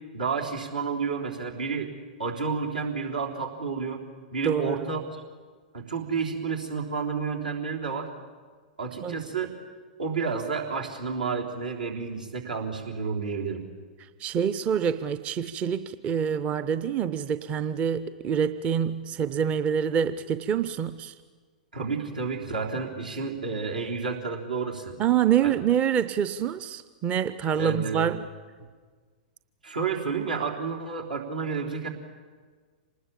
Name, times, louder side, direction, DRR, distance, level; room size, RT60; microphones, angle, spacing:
voice 1, 0.1-1.9 2.2-4.0 4.3-5.2 5.7-8.1 8.8-9.5 10.0-13.6 21.7-24.9 25.4-25.6 27.6-28.1 29.6-31.9, right 5 dB, 85° right, -1 dB, 3.6 m, -30 dB
voice 2, 4.4-4.8 9.0-9.2 14.2-21.1 25.0-28.3, right 8 dB, 30° right, 13 dB, 0.6 m, -26 dB
26.0 x 20.0 x 7.4 m, 1.5 s
figure-of-eight pair, 105°, 5 cm